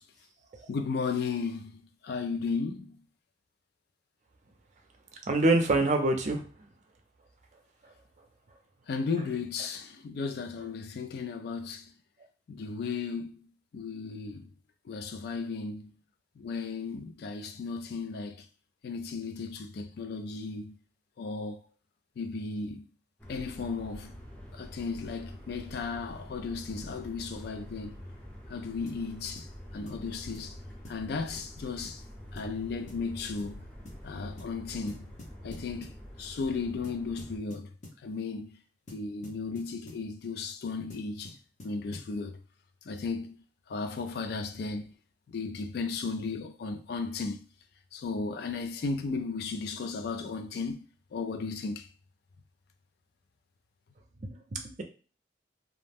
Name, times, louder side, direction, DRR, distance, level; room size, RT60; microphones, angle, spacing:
voice 1, 0.7-3.0 8.9-11.9 12.5-13.5 13.7-14.5 14.9-15.9 16.4-18.5 18.8-20.8 21.2-21.6 22.2-22.9 23.3-24.2 24.5-27.9 28.5-29.5 29.7-30.6 30.9-32.0 32.3-33.6 34.0-35.1 35.4-37.7 38.0-38.6 38.9-41.4 41.6-42.4 42.9-43.4 43.7-44.9 45.3-47.5 47.9-50.8 51.1-51.9, left 4 dB, 60° left, 0.3 m, -35 dB
voice 2, 5.3-6.4, right 2 dB, 45° right, 0.5 m, -24 dB
sound 1, 23.2-37.4, equal, 10° left, 0.6 m, -46 dB
sound 2, 28.9-29.1 29.4-29.5 29.9-30.1 30.3-30.5 30.8-31.1 31.4-31.5 31.8-32.0 32.4-32.6 32.9-33.1 33.4-33.5 33.8-34.0 34.4-34.6 34.9-36.0 36.8-38.0 38.9-40.1 40.9-42.1, left 1 dB, 45° left, 0.7 m, -49 dB
2.4 x 2.1 x 3.4 m
head